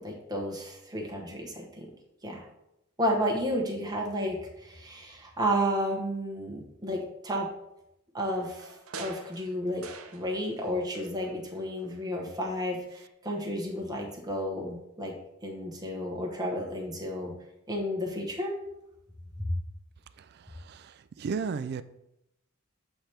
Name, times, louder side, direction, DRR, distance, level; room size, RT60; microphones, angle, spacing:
voice 1, 0.0-1.9 2.2-2.4 3.0-7.5 8.1-8.7 9.0-9.8 10.1-15.1 15.4-17.3 17.7-18.5 19.4-19.5, equal, 20° right, -1 dB, 1.1 m, -32 dB
sound 1, 8.2-10.7 10.9-12.0 12.4-12.5, right 4 dB, 75° right, 0.7 m, -46 dB
voice 2, 20.2-21.8, right 5 dB, 50° right, 14 dB, 0.3 m, -35 dB
7.9 x 3.3 x 4.3 m, 0.85 s
head